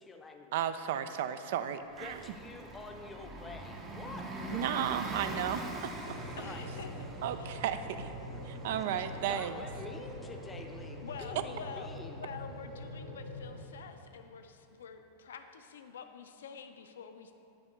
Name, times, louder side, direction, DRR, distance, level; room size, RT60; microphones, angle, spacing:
voice 1, 0.0-1.0 2.0-4.6 5.2-5.3 6.4-6.7 8.3-8.4 9.3-12.2, left 3 dB, 15° left, 3 dB, 0.6 m, -47 dB
voice 2, 0.5-2.2 4.5-5.9 7.2-8.1 8.4-9.6, right 9 dB, 55° right, 11 dB, 0.3 m, -34 dB
Bus, 1.9-14.2, right 1 dB, 25° right, 0.7 m, -45 dB
sound 1, 6.0-13.6, left 1 dB, 80° right, 0.8 m, -44 dB
voice 3, 6.4-6.9 7.4-7.6 11.0-17.3, left 7 dB, 65° left, 7 dB, 0.4 m, -47 dB
8.8 x 3.5 x 5.0 m, 2.6 s
figure-of-eight pair, 90°, 0 cm